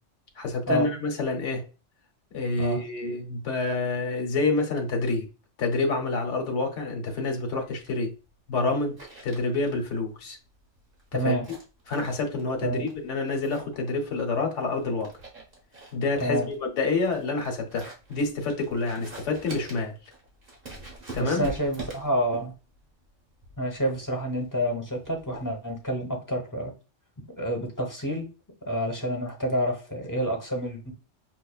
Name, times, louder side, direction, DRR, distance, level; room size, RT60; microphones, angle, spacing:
voice 1, 0.4-1.6 2.3-5.3 5.6-8.1 8.5-8.9 9.2-10.4 11.1-11.4 11.9-15.1 15.9-19.9 21.1-21.5, left 3 dB, 75° left, 1.1 m, -28 dB
sound 1, 7.3-25.9, right 2 dB, 50° right, 1.3 m, -46 dB
voice 2, 11.1-11.5 12.6-12.9 16.2-16.5 21.1-22.5 23.6-26.7 27.4-28.3 28.7-30.9, equal, 20° left, 0.7 m, -28 dB
6.0 x 2.1 x 2.3 m
omnidirectional pair, 1.2 m